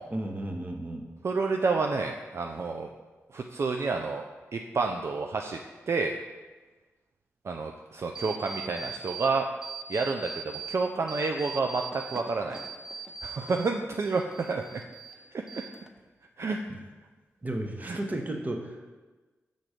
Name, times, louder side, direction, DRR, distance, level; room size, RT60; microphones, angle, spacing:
voice 1, 0.1-1.0 16.4-16.5 17.4-18.9, right 1 dB, 30° right, 3 dB, 1.0 m, -34 dB
voice 2, 1.2-2.9 3.3-4.2 4.5-5.6 5.9-6.1 7.4-9.5 9.9-12.6 13.2-14.8 15.3-15.6 16.4-16.6 17.8-18.0, right 4 dB, 55° right, 3 dB, 0.4 m, -29 dB
sound 1, 8.1-9.3 9.6-10.8 11.1-13.7 14.0-15.2 15.5-16.1, right 5 dB, 10° right, 0.6 m, -40 dB
6.1 x 3.9 x 5.0 m, 1.3 s
cardioid pair, 50°, 5 cm